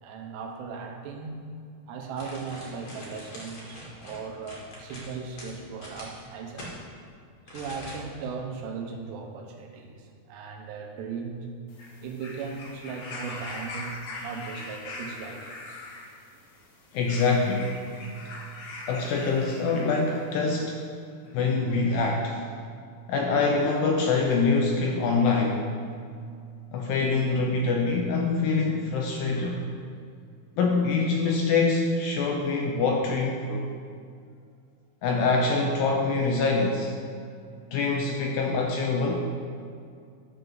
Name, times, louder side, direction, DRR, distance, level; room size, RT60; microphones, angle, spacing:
voice 1, 0.0-1.5 1.9-6.7 7.5-11.5 12.0-13.9 14.2-15.8, right 5 dB, 90° right, 3 dB, 3.1 m, -37 dB
sound 1, 2.2-6.7 7.5-8.3 8.6-8.7, equal, 40° left, 1.8 m, -43 dB
sound 2, 11.7-20.4 21.3-21.4, left 2 dB, 65° left, 1.9 m, -41 dB
voice 2, 16.9-17.8 18.9-20.8 21.3-22.4 23.1-25.7 26.7-29.6 30.6-33.6 35.0-36.9 37.7-39.4, left 4 dB, 80° left, 0 dB, 2.2 m, -25 dB
12.0 x 3.9 x 6.8 m, 2.3 s
omnidirectional pair, 4.8 m